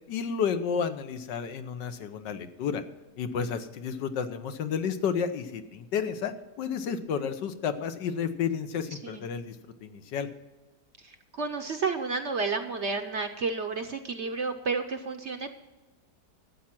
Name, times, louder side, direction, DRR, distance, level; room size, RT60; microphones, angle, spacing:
voice 1, 0.1-2.8 3.2-10.3, left 7 dB, 80° left, 9 dB, 1.6 m, -31 dB
voice 2, 8.9-9.2 11.0-15.5, right 4 dB, 55° right, 7 dB, 0.9 m, -31 dB
13.0 x 8.7 x 6.0 m, 1.1 s
omnidirectional pair, 1.9 m